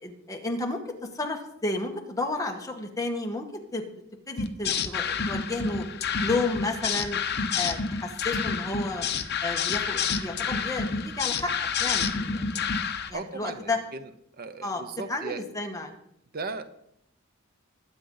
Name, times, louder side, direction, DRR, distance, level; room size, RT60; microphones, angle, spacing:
voice 1, 0.0-0.8 1.1-3.4 3.7-3.8 4.3-5.8 6.2-7.2 7.6-9.0 9.4-12.6 13.1-13.8 14.6-14.8 15.1-16.0, left 2 dB, 15° left, 2 dB, 1.6 m, -32 dB
sound 1, 4.4-13.1, left 6 dB, 55° left, 0.9 m, -29 dB
voice 2, 13.1-15.4 16.3-16.6, right 4 dB, 45° right, 10 dB, 0.8 m, -37 dB
21.0 x 8.9 x 4.0 m, 0.76 s
head